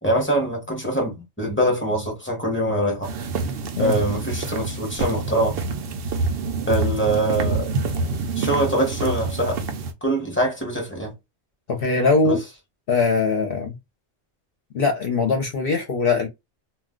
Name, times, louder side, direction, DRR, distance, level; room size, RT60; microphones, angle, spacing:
voice 1, 0.0-3.1 3.8-5.6 6.7-7.7 8.4-9.6 10.0-11.1 12.2-12.4, right 1 dB, 10° left, 0.9 m, -23 dB
sound 1, 3.0-9.9, right 3 dB, 60° right, 0.7 m, -27 dB
voice 2, 11.7-12.4 12.9-13.8 14.7-16.3, left 4 dB, 55° left, 0.8 m, -21 dB
2.4 x 2.2 x 3.7 m
omnidirectional pair, 1.3 m